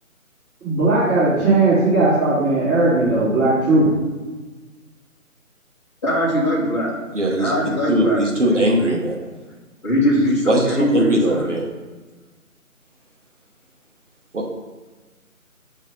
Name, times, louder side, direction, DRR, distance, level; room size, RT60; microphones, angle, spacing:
voice 1, 0.6-3.9, right 2 dB, 5° right, -22 dB, 2.0 m, -17 dB
voice 2, 6.0-6.9 7.4-8.6 9.8-11.5, equal, 20° left, -10 dB, 1.5 m, -21 dB
voice 3, 7.1-7.6 7.9-9.2 10.5-11.7 14.3-14.5, right 1 dB, 55° right, -1 dB, 1.2 m, -20 dB
6.6 x 3.2 x 5.2 m, 1.3 s
figure-of-eight pair, 160°, 43 cm